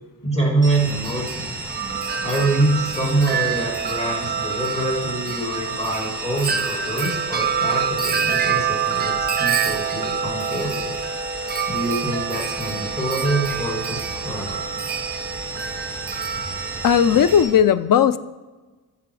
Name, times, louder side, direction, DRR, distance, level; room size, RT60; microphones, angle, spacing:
voice 1, 0.2-1.5 2.2-10.9 11.7-14.7, right 2 dB, 15° left, -1 dB, 2.8 m, -25 dB
sound 1, 0.6-17.4, right 3 dB, 10° right, 2.1 m, -33 dB
Wind chime, 0.7-17.6, right 7 dB, 25° right, 0.6 m, -27 dB
voice 2, 16.8-18.2, left 8 dB, 60° left, 14 dB, 0.5 m, -16 dB
14.0 x 5.9 x 4.8 m, 1.2 s
wide cardioid pair, 130°, 39 cm